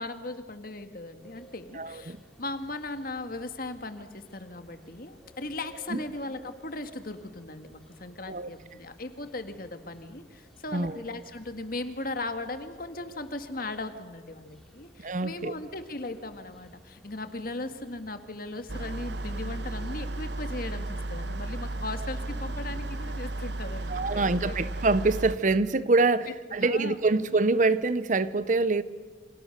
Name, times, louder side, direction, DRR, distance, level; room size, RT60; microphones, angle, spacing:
voice 1, 0.0-24.6 26.6-27.3, left 2 dB, 50° left, 1.8 m, -38 dB
sound 1, 1.2-19.4, right 1 dB, ahead, 3.1 m, -56 dB
voice 2, 1.7-2.2 5.9-6.0 8.3-8.5 10.7-11.0 15.0-15.5 23.9-28.8, right 3 dB, 40° right, 0.7 m, -25 dB
Train Engine Starts, 18.7-25.4, right 2 dB, 65° right, 1.2 m, -34 dB
28.0 x 26.0 x 6.6 m
head